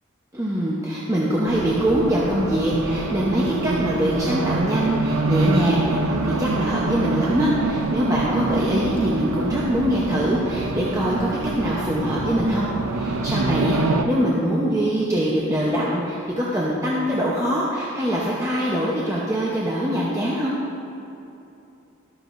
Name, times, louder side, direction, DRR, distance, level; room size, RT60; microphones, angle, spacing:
voice 1, 0.3-20.5, equal, 15° right, -6 dB, 0.8 m, -23 dB
Race car auto racing, 1.5-14.0, right 3 dB, 75° right, 0.6 m, -25 dB
13.0 x 12.0 x 2.6 m, 2.8 s
head